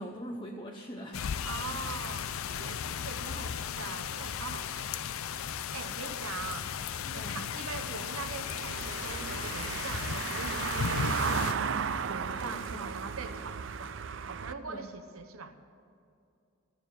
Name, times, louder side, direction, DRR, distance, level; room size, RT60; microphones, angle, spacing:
voice 1, 0.0-1.3 6.2-6.3 7.2-7.5 12.3-12.9 14.7-14.9, equal, 25° left, 0 dB, 0.8 m, -42 dB
sound 1, 1.1-11.5, left 7 dB, 80° left, 0.5 m, -36 dB
voice 2, 1.4-5.1 5.7-6.7 7.0-13.9 14.2-15.5, right 4 dB, 90° right, 8 dB, 1.0 m, -42 dB
Car passing by / Engine, 7.8-14.5, right 6 dB, 60° right, 0.5 m, -35 dB
16.0 x 7.2 x 9.2 m, 2.5 s
head